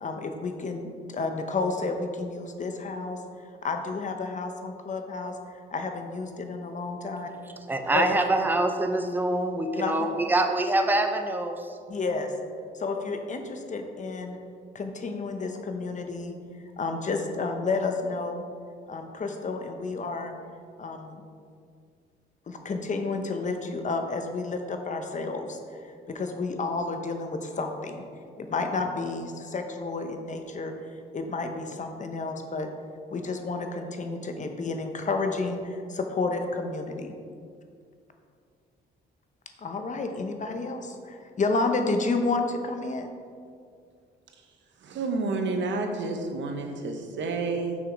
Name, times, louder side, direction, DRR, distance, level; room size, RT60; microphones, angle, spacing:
voice 1, 0.0-3.2 3.6-5.4 5.7-7.3 7.9-8.1 9.7-10.1 11.9-12.3 12.7-14.4 14.7-16.3 16.8-18.4 18.9-20.3 20.8-21.2 22.5-28.0 28.4-30.7 31.1-32.7 33.1-37.1 39.6-43.1, left 3 dB, 40° left, 5 dB, 0.8 m, -31 dB
voice 2, 7.7-11.7, right 2 dB, 10° right, 5 dB, 0.6 m, -25 dB
voice 3, 44.8-47.8, right 3 dB, 65° right, 4 dB, 1.0 m, -30 dB
6.3 x 6.0 x 4.6 m, 2.2 s
cardioid pair, 90°, 20 cm